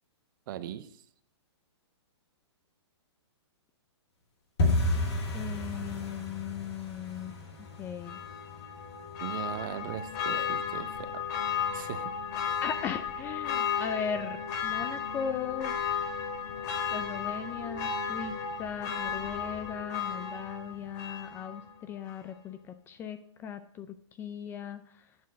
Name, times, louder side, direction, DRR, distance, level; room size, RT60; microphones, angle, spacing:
voice 1, 0.5-0.9 9.2-11.2 11.7-12.1, right 11 dB, 45° right, 11 dB, 0.7 m, -39 dB
sound 1, 4.6-15.3 15.6-16.3 16.5-16.8 17.1-17.5 17.8-17.9 18.4-18.9 19.2-19.3 19.8-19.9, left 2 dB, 65° left, 2.2 m, -35 dB
voice 2, 5.3-7.4 7.8-8.2 10.3-10.5 12.6-15.8 16.9-18.3 18.6-22.6 22.9-23.9 24.2-24.8, left 7 dB, 15° left, 11 dB, 0.3 m, -37 dB
Church bell, 8.0-21.7 22.1-22.2, left 7 dB, 40° left, 1.4 m, -34 dB
9.4 x 4.5 x 6.1 m, 0.67 s
hypercardioid pair, 140°, 15 cm